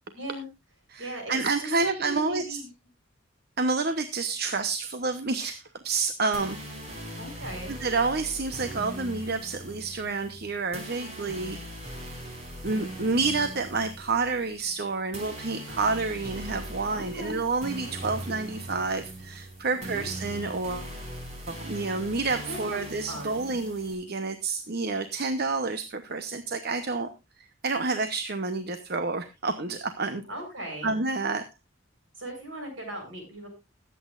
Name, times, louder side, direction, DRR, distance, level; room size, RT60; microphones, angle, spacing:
voice 1, 0.1-0.5 1.0-2.7 7.2-7.8 16.9-17.4 19.7-20.1 22.5-23.5 30.3-31.0 32.2-33.5, equal, 70° right, 3 dB, 7.3 m, -38 dB
voice 2, 0.9-2.6 3.6-6.6 7.1-11.6 12.6-20.9 21.5-27.1 27.4-30.2 30.8-31.5, right 3 dB, 50° right, 9 dB, 1.0 m, -29 dB
sound 1, 6.3-23.9, right 1 dB, 35° right, 4.9 m, -40 dB
21.0 x 8.6 x 2.5 m, 0.24 s
head